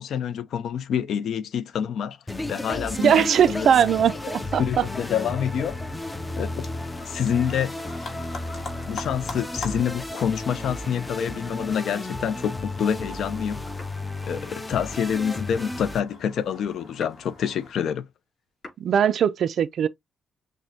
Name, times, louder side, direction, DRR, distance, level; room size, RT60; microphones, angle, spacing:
voice 1, 0.0-2.2 2.5-3.7 4.2-4.3 4.6-5.9 6.4-6.7 7.1-7.7 8.9-13.6 14.2-18.0, left 8 dB, 65° left, 0.5 m, -27 dB
sound 1, 2.3-16.0, left 2 dB, 10° left, 0.4 m, -33 dB
sound 2, 2.9-17.7, left 3 dB, 50° left, 1.6 m, -44 dB
voice 2, 3.0-4.9 18.8-19.9, right 8 dB, 55° right, 0.3 m, -20 dB
sound 3, 13.8-18.1 18.4-18.8, left 2 dB, 30° left, 3.2 m, -47 dB
6.2 x 2.1 x 2.7 m
cardioid pair, 140°, 0 cm